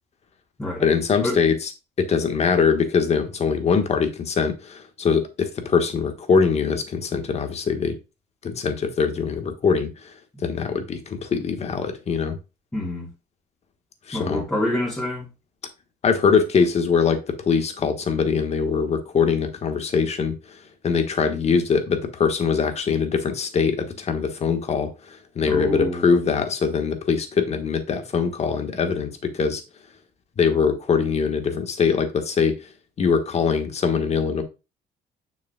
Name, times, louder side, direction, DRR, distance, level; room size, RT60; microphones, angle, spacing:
voice 1, 0.8-1.7 2.0-8.0 8.4-9.9 10.4-12.3 14.1-14.4 16.0-20.3 20.8-24.9 25.3-29.6 30.4-32.5 33.0-34.4, left 5 dB, 40° left, 1.3 m, -22 dB
voice 2, 12.7-13.1 14.1-15.3 25.5-26.1, left 1 dB, 10° left, 2.2 m, -26 dB
7.0 x 6.1 x 2.2 m
cardioid pair, 110°, 17 cm